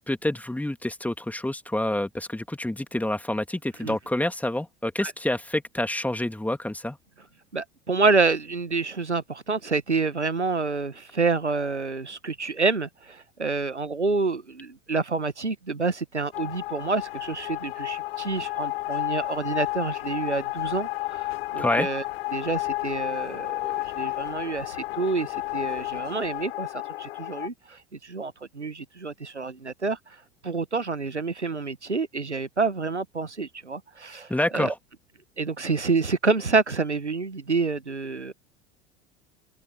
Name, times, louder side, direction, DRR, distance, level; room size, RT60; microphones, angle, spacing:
voice 1, 0.0-7.0 21.6-21.9 34.3-34.7, left 1 dB, 5° left, 2.7 m, -28 dB
voice 2, 7.5-22.0 22.3-30.2 30.4-34.7 35.4-38.3, right 4 dB, 85° right, 1.3 m, -28 dB
sound 1, 16.3-27.5, left 19 dB, 60° left, 1.0 m, -32 dB
open air
figure-of-eight pair, 70°, 33 cm